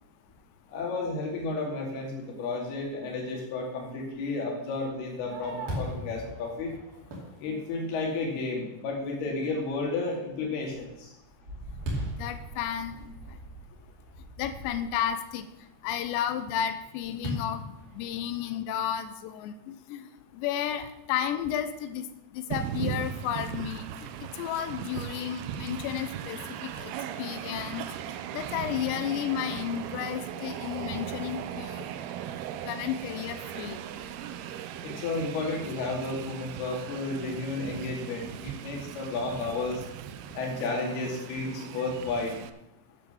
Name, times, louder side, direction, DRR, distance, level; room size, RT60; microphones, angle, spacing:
voice 1, 0.7-6.7 7.4-11.1 34.8-39.8 40.3-42.3, left 3 dB, 65° left, -1 dB, 4.3 m, -32 dB
Fireworks, 4.9-8.3 8.9-9.0 9.5-9.9 10.3-15.2 17.2-18.6, right 1 dB, 50° right, 4.1 m, -39 dB
voice 2, 12.0-13.4 14.4-15.5 15.8-22.1 22.3-23.9 24.4-26.9 27.2-27.9 28.3-31.9 32.7-33.8, left 10 dB, 85° left, 11 dB, 3.0 m, -32 dB
Train, 22.5-42.5, right 10 dB, 80° right, 2.3 m, -38 dB
12.0 x 7.4 x 6.9 m, 0.88 s
omnidirectional pair, 5.0 m